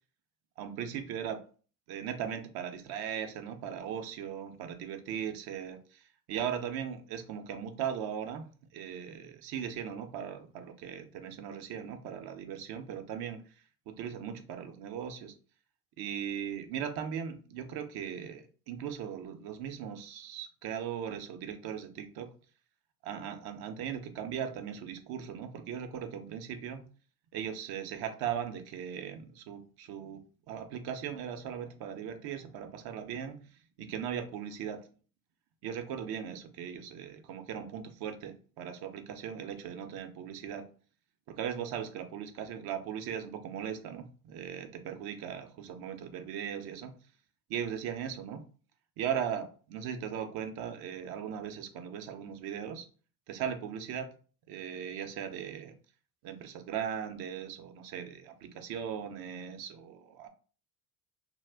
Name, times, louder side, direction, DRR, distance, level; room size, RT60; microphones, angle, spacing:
voice 1, 0.6-1.4 1.9-8.4 8.7-13.5 13.9-15.3 16.0-22.3 23.0-26.8 27.3-33.4 33.8-34.8 35.6-40.6 41.3-46.9 47.5-48.5 49.0-52.9 53.3-54.1 54.5-55.7 56.2-60.3, right 8 dB, 55° right, 6 dB, 0.6 m, -38 dB
2.3 x 2.1 x 3.4 m, 0.39 s
supercardioid pair, 90°, 44 cm